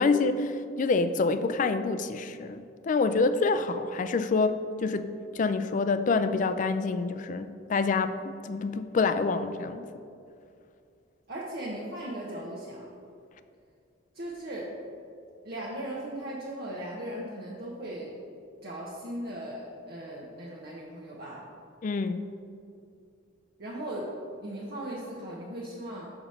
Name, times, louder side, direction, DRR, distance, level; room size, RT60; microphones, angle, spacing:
voice 1, 0.0-9.9 21.8-22.2, left 4 dB, 40° left, 11 dB, 0.3 m, -27 dB
voice 2, 11.3-12.9 14.1-14.7 15.4-18.2 18.6-21.5 23.6-24.1 24.4-26.1, right 1 dB, 55° right, -5 dB, 0.9 m, -38 dB
6.4 x 4.9 x 5.5 m, 2.4 s
head